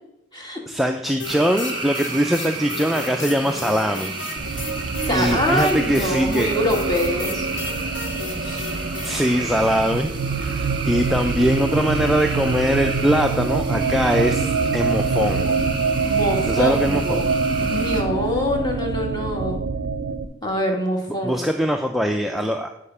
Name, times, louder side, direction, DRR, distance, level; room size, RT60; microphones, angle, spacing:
voice 1, 0.7-4.7 5.1-6.5 9.0-10.1 10.4-15.6 16.5-17.3 21.2-22.7, equal, ahead, 3 dB, 0.3 m, -22 dB
sound 1, 1.2-9.2, left 3 dB, 75° left, 1.4 m, -34 dB
sound 2, 1.2-18.0, right 3 dB, 25° right, 1.1 m, -32 dB
sound 3, 4.4-20.2, right 4 dB, 60° right, 0.5 m, -25 dB
voice 2, 5.1-7.5 8.4-8.6 16.0-17.3 17.6-19.6 20.4-21.5, left 1 dB, 20° left, 1 dB, 1.4 m, -25 dB
8.5 x 4.9 x 5.5 m, 0.84 s
head